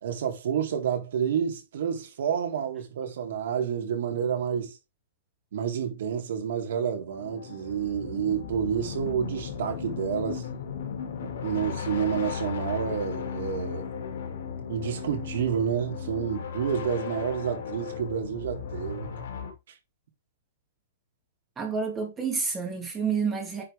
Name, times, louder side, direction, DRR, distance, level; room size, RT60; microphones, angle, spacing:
voice 1, 0.0-4.7 5.5-10.5 11.2-14.0 14.7-19.1, right 8 dB, 65° right, 3.6 m, -29 dB
sound 1, 7.1-19.5, left 7 dB, 70° left, 2.8 m, -36 dB
voice 2, 21.6-23.6, right 5 dB, 10° right, 2.6 m, -29 dB
10.0 x 4.7 x 3.7 m
hypercardioid pair, 170°, 0 cm